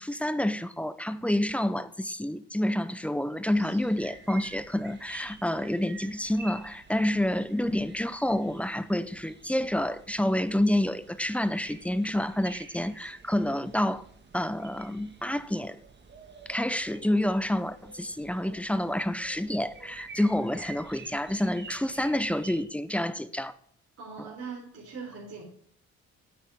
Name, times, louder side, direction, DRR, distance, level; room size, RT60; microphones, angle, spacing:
voice 1, 0.0-14.0 14.3-15.8 16.5-23.5 24.2-24.3, left 1 dB, 5° left, 0.6 m, -28 dB
sound 1, 3.5-22.6, right 4 dB, 35° right, 1.6 m, -49 dB
voice 2, 24.0-25.4, right 5 dB, 50° right, 3.6 m, -41 dB
9.1 x 8.4 x 3.5 m
cardioid pair, 90°, 30 cm